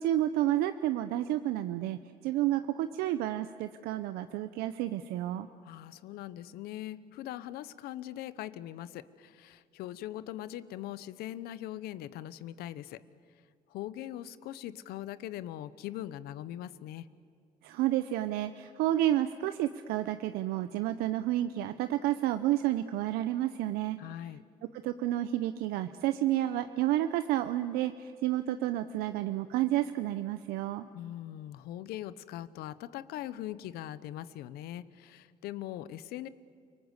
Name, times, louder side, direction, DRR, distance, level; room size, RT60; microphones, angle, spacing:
voice 1, 0.0-5.5 17.6-24.0 24.8-30.9, right 13 dB, 90° right, 10 dB, 0.7 m, -30 dB
voice 2, 5.6-13.0 13.7-17.1 24.0-24.4 30.9-36.3, left 13 dB, 85° left, 16 dB, 0.9 m, -41 dB
29.5 x 19.0 x 8.2 m, 2.3 s
supercardioid pair, 70°, 16 cm